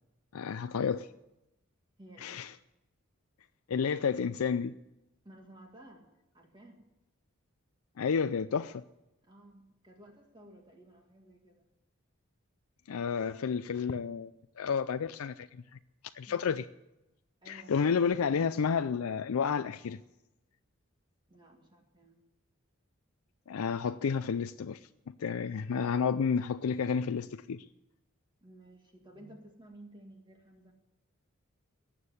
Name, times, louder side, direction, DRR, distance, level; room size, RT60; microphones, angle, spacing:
voice 1, 0.3-1.1 2.2-2.5 3.7-4.8 8.0-8.8 12.9-14.3 14.6-15.5 16.1-16.6 17.5-20.0 23.5-24.8 25.1-27.7, left 6 dB, 85° left, 0.4 m, -31 dB
voice 2, 2.0-2.4 5.2-6.1 6.3-6.8 9.2-11.6 16.3-16.6 17.4-17.9 21.3-22.2 28.4-30.7, right 1 dB, 20° right, 2.0 m, -54 dB
18.0 x 7.4 x 9.7 m
head